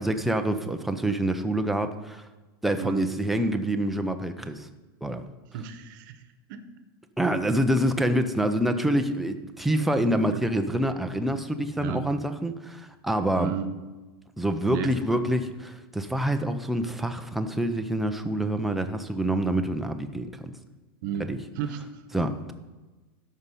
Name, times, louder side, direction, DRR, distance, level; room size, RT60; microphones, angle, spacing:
voice 1, 0.0-2.2 2.6-4.7 5.0-5.2 7.2-13.5 14.4-20.5 21.3-21.4 22.1-22.5, right 1 dB, ahead, 6 dB, 0.5 m, -26 dB
voice 2, 2.8-3.1 5.5-6.2 6.5-6.6 10.1-10.4 11.8-12.1 13.4-13.7 14.7-15.3 21.0-21.3 21.5-22.1, right 9 dB, 55° right, 10 dB, 1.1 m, -33 dB
13.0 x 5.6 x 5.5 m, 1.2 s
supercardioid pair, 155°, 12 cm